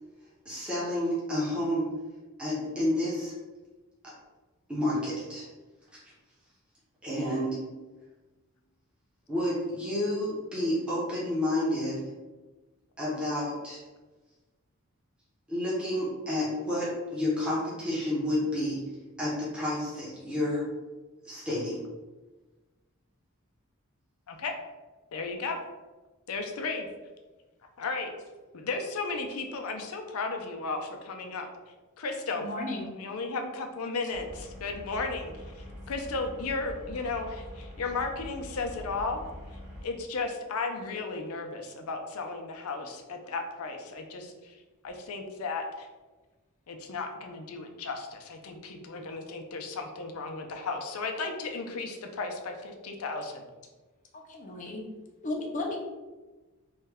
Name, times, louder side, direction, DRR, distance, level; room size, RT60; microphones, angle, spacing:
voice 1, 0.4-1.9 2.4-3.3 4.0-4.1 4.7-5.4 7.0-7.6 9.3-12.0 13.0-13.8 15.5-18.8 19.2-20.6 21.2-21.8, left 1 dB, 5° right, -8 dB, 0.7 m, -30 dB
voice 2, 25.1-25.6 26.3-26.9 27.8-28.1 28.5-31.5 32.0-32.5 32.9-39.2 39.8-44.6 44.8-45.9 46.7-53.4, left 3 dB, 85° left, 4 dB, 0.5 m, -34 dB
voice 3, 32.3-32.9 54.3-54.8 55.2-55.8, left 2 dB, 35° left, 1 dB, 0.5 m, -34 dB
sound 1, 34.1-39.8, left 1 dB, 85° right, 1.5 m, -44 dB
3.1 x 2.2 x 3.4 m, 1.2 s
head